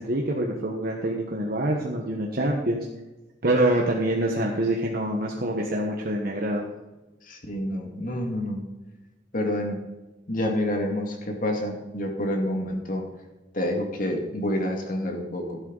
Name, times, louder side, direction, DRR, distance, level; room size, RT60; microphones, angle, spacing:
voice 1, 0.0-2.9 3.4-6.7, right 1 dB, 55° right, -1 dB, 1.4 m, -25 dB
voice 2, 7.2-8.6 9.3-9.8 10.3-13.0 13.5-15.6, left 1 dB, 50° left, 2 dB, 2.3 m, -28 dB
13.0 x 11.0 x 4.1 m, 1.1 s
head